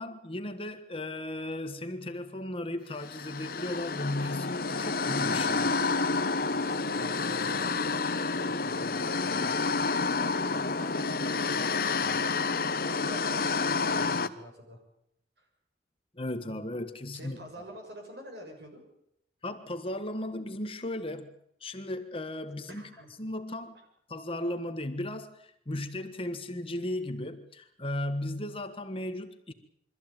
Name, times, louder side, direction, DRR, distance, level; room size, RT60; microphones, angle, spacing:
voice 1, 0.0-5.7 16.1-17.4 19.4-21.3 21.6-22.9 23.2-23.8 24.1-29.5, left 1 dB, 30° left, 8 dB, 1.5 m, -36 dB
sound 1, 3.0-14.3, left 4 dB, 55° left, 1.1 m, -29 dB
voice 2, 6.5-9.5 9.8-12.2 12.7-14.8 15.4-15.5 17.1-18.8 22.7-23.1, equal, 60° right, 2 dB, 7.0 m, -47 dB
23.5 x 14.5 x 9.1 m, 0.77 s
head